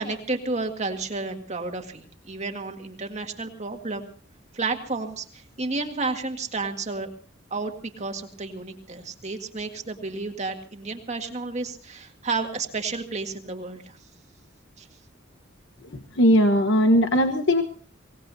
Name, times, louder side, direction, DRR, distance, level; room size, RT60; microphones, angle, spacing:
voice 1, 0.0-4.1 4.5-7.1 7.5-14.0 14.8-14.9, right 3 dB, 35° right, 4 dB, 1.9 m, -31 dB
voice 2, 16.2-17.6, equal, 65° left, 7 dB, 1.2 m, -18 dB
24.5 x 18.0 x 2.7 m, 0.44 s
head